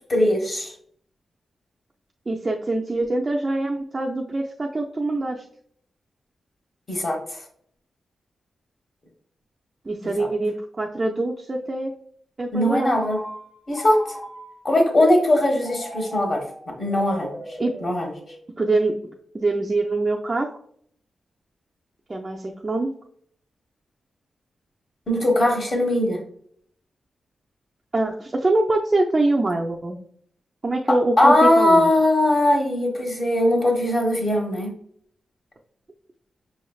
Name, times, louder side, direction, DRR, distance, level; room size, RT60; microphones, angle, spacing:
voice 1, 0.1-0.7 6.9-7.4 10.2-10.3 12.5-13.2 13.7-14.0 14.6-16.4 16.8-17.3 17.8-18.1 25.1-26.2 31.2-34.7, left 1 dB, 35° left, 1 dB, 1.2 m, -20 dB
voice 2, 2.3-5.4 9.9-11.9 12.4-12.9 17.6-17.7 18.6-18.9 19.3-20.5 22.1-22.9 27.9-30.0 30.6-31.9, right 2 dB, 25° right, -1 dB, 0.4 m, -24 dB
Telephone, 12.7-14.7 15.6-18.6, equal, 5° left, 0.8 m, -38 dB
6.3 x 3.1 x 2.3 m, 0.63 s
wide cardioid pair, 140°, 0 cm